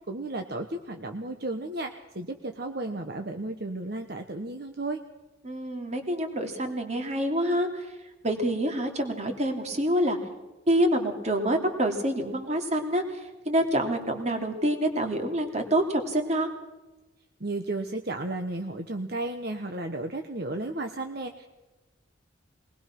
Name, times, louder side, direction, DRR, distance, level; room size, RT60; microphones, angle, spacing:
voice 1, 0.1-5.0 17.4-21.5, right 2 dB, 55° right, 5 dB, 1.2 m, -33 dB
voice 2, 5.4-8.0 8.2-10.2 10.7-16.5, right 1 dB, 35° right, 4 dB, 2.8 m, -27 dB
22.0 x 20.0 x 6.0 m, 1.1 s
head